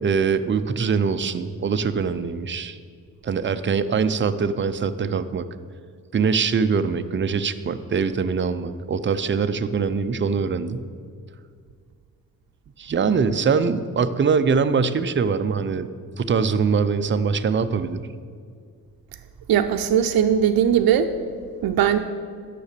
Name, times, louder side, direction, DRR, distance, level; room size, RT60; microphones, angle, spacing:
voice 1, 0.0-2.8 3.2-5.5 6.1-10.9 12.8-15.9 16.2-18.1, right 5 dB, 35° right, 10 dB, 0.5 m, -23 dB
voice 2, 19.5-21.1 21.6-22.0, right 9 dB, 85° right, 6 dB, 0.5 m, -19 dB
10.0 x 6.7 x 6.7 m, 2.1 s
cardioid pair, 105°, 35 cm